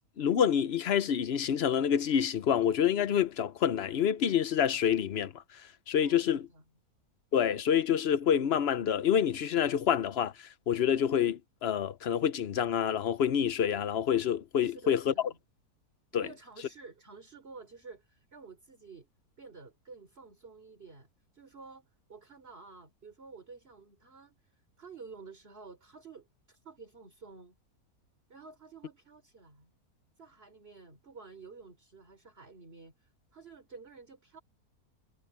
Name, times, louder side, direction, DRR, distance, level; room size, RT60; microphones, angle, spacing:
voice 1, 0.2-5.3 5.9-6.5 7.3-15.1 16.1-16.2, left 9 dB, 55° left, 0.8 m, -27 dB
voice 2, 6.0-6.6 14.6-15.4 16.1-19.1 19.4-21.1 21.3-27.6 28.3-29.7 30.2-34.4, right 4 dB, 40° right, 3.5 m, -51 dB
omnidirectional pair, 1.6 m